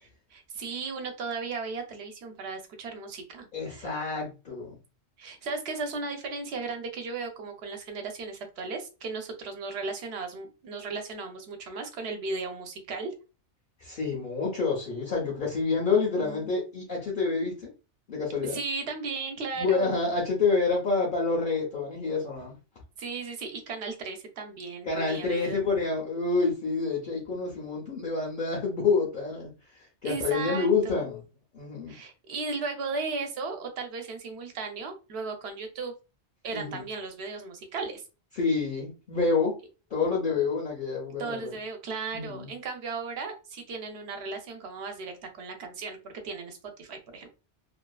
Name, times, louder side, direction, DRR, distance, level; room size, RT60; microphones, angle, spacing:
voice 1, 0.3-3.9 5.2-13.1 16.2-16.4 18.4-20.0 23.0-25.6 30.0-31.0 31.9-35.9 36.4-38.0 41.2-47.3, right 4 dB, 70° right, 0.9 m, -36 dB
voice 2, 3.5-4.8 13.8-17.7 18.1-18.6 19.5-22.5 24.9-31.2 31.5-32.0 36.5-36.8 38.3-39.6 39.9-41.5 42.1-42.5, left 4 dB, 55° left, 0.8 m, -28 dB
2.6 x 2.3 x 2.2 m
omnidirectional pair, 1.2 m